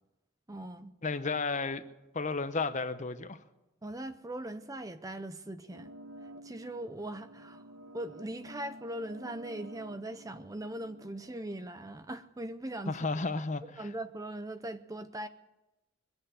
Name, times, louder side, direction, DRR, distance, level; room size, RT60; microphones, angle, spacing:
voice 1, 0.5-0.9 3.8-5.9 6.2-7.6 7.9-13.0 13.8-15.3, right 1 dB, 15° right, 0.5 m, -40 dB
voice 2, 1.0-1.9 2.1-3.4 12.9-13.9, left 3 dB, 35° left, 0.7 m, -33 dB
sound 1, 5.7-11.6, equal, 65° right, 1.3 m, -50 dB
22.0 x 7.9 x 8.2 m
head